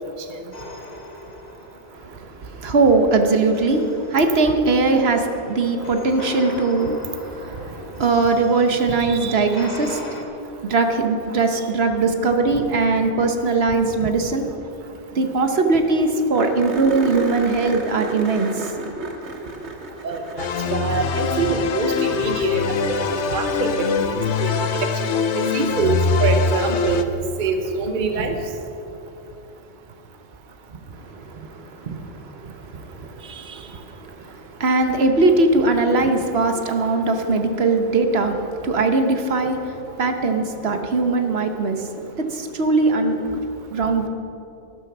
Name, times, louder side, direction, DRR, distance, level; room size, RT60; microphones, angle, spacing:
sound 1, 0.5-2.5 3.4-10.2, left 1 dB, 40° left, 1.4 m, -39 dB
voice 1, 1.9-14.4 15.1-19.1 31.0-31.9 32.4-43.4 43.7-44.1, right 3 dB, 65° right, 5 dB, 1.3 m, -21 dB
voice 2, 8.9-9.4 20.0-23.9 24.4-27.0 27.4-28.4, right 4 dB, 50° right, 6 dB, 1.0 m, -25 dB
sound 2, 14.9-15.0 15.2-15.3 15.6-15.7 16.3-21.8 24.1-24.2 27.0-27.1, right 2 dB, 85° right, 1.8 m, -33 dB
sound 3, 20.4-27.0, left 5 dB, 85° left, 1.1 m, -23 dB
12.5 x 11.5 x 6.0 m, 2.8 s
omnidirectional pair, 1.1 m